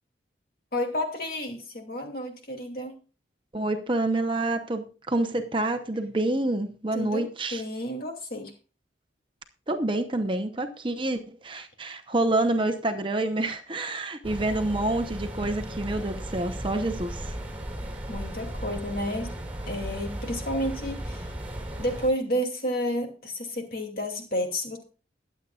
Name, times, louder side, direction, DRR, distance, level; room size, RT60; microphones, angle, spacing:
voice 1, 0.7-3.0 6.9-8.5 18.1-19.4 19.7-21.3 21.8-24.9, equal, 50° left, 2.6 m, -31 dB
voice 2, 3.5-7.6 9.7-17.4, right 2 dB, 25° right, 0.9 m, -28 dB
sound 1, 14.2-22.1, right 1 dB, 5° right, 3.6 m, -36 dB
21.5 x 8.3 x 2.4 m
head